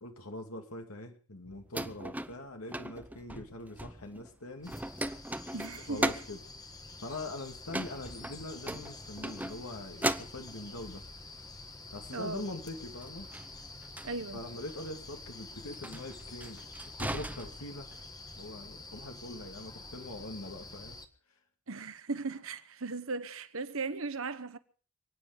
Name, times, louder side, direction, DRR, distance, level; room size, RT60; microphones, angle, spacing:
voice 1, 0.0-4.7 5.9-6.4 7.0-11.0 11.9-13.3 14.3-16.6 17.0-17.9 18.4-21.0, left 2 dB, 70° left, 2.4 m, -43 dB
sound 1, 1.5-4.3 4.6-6.5 7.7-9.7 10.0-10.9 13.0-14.1 14.7-14.9 15.7-18.0, right 1 dB, 5° right, 0.7 m, -37 dB
sound 2, 4.6-21.1, left 3 dB, 15° left, 1.5 m, -48 dB
voice 2, 5.5-6.0 12.1-12.5 14.0-14.4 21.7-24.6, right 3 dB, 65° right, 1.2 m, -37 dB
28.5 x 9.8 x 5.1 m
head